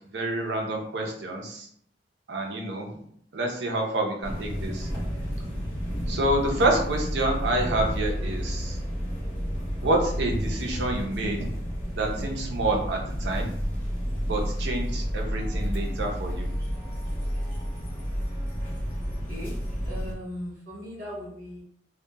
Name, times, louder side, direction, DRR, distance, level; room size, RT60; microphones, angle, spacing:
voice 1, 0.1-1.7 2.3-3.0 3.3-4.9 6.1-8.8 9.8-11.5 11.9-13.5 14.2-16.5, right 1 dB, 75° right, 1 dB, 0.6 m, -28 dB
sound 1, 4.2-20.1, equal, 10° left, 0.8 m, -31 dB
voice 2, 19.8-21.6, left 1 dB, 50° right, -7 dB, 1.2 m, -38 dB
2.8 x 2.1 x 2.3 m, 0.65 s
head